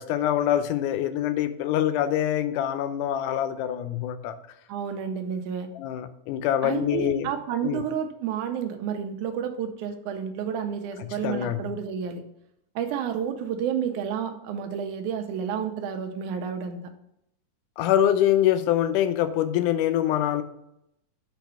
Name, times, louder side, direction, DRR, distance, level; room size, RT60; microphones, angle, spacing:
voice 1, 0.0-4.4 5.8-7.3 7.6-7.8 11.0-11.7 17.8-20.4, left 11 dB, 90° left, 11 dB, 2.1 m, -25 dB
voice 2, 4.7-5.7 6.6-12.2 12.8-16.8, right 8 dB, 80° right, 6 dB, 2.1 m, -30 dB
6.7 x 4.1 x 5.5 m, 0.79 s
omnidirectional pair, 3.6 m